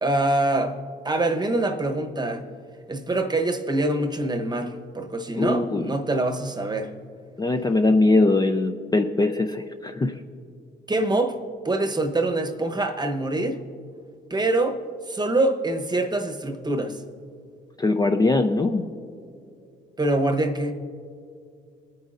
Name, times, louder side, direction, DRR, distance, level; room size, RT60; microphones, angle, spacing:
voice 1, 0.0-0.8 1.0-2.5 2.9-6.9 10.9-11.4 11.6-13.6 14.3-14.8 15.1-17.0 20.0-20.7, right 2 dB, 20° right, 6 dB, 1.0 m, -24 dB
voice 2, 5.4-5.9 7.4-10.2 17.8-18.8, left 2 dB, 20° left, 5 dB, 0.5 m, -21 dB
21.5 x 9.4 x 2.5 m, 2.4 s
cardioid pair, 90°, 20 cm